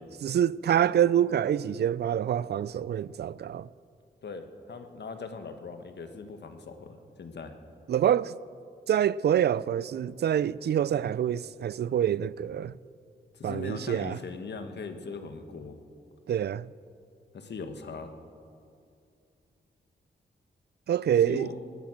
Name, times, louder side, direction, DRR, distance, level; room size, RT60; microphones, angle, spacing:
voice 1, 0.2-3.7 7.9-8.3 8.9-12.8 13.4-14.2 16.3-16.7 20.9-21.5, right 10 dB, 60° right, 0.4 m, -26 dB
voice 2, 4.2-7.5 13.3-15.8 17.3-18.1 21.3-21.6, left 4 dB, 65° left, 1.4 m, -40 dB
18.0 x 9.3 x 7.5 m
cardioid pair, 80°, 19 cm